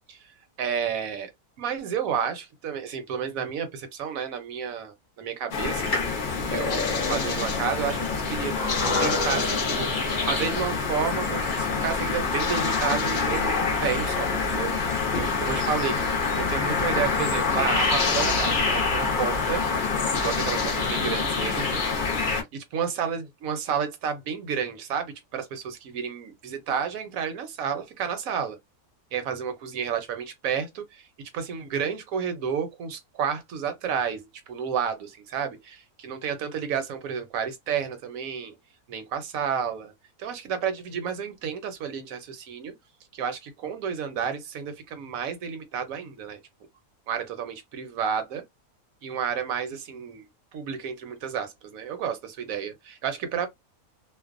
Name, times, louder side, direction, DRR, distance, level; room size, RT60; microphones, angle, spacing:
voice 1, 0.6-1.3 1.6-5.9 6.5-8.5 9.0-14.7 15.2-19.7 20.1-22.1 22.5-28.6 29.1-31.1 31.3-38.5 38.9-39.9 40.2-42.7 43.1-46.4 47.1-48.4 49.0-53.5, right 7 dB, 70° right, 1.0 m, -31 dB
sound 1, 5.5-22.4, left 4 dB, 60° left, 0.5 m, -26 dB
sound 2, 8.5-12.9 13.1-13.2, left 2 dB, 35° left, 1.0 m, -32 dB
2.5 x 2.1 x 2.4 m
omnidirectional pair, 1.6 m